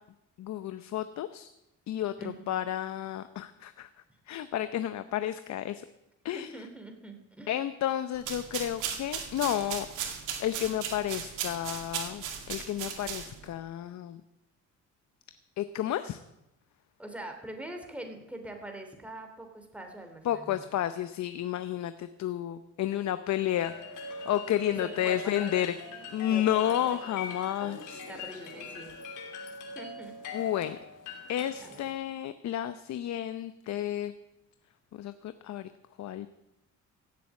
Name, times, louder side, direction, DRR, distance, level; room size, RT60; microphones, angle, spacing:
voice 1, 0.4-1.5 1.9-3.9 4.3-5.8 6.2-6.5 7.5-9.9 10.4-14.2 15.6-16.2 20.2-25.7 26.1-28.0 30.3-30.8 31.3-34.1 34.9-35.7 36.0-36.3, left 11 dB, 65° left, 11 dB, 0.8 m, -31 dB
voice 2, 2.2-2.5 6.3-7.6 17.0-20.7 24.8-25.7 26.3-26.7 27.1-27.8 28.1-28.9 29.7-30.1 31.6-31.9, right 1 dB, 5° right, 4 dB, 3.2 m, -43 dB
sound 1, 8.2-13.5, right 8 dB, 90° right, 2.3 m, -37 dB
sound 2, 23.5-31.9, left 4 dB, 90° left, 3.2 m, -42 dB
16.0 x 7.8 x 8.5 m, 0.89 s
cardioid pair, 90°, 30 cm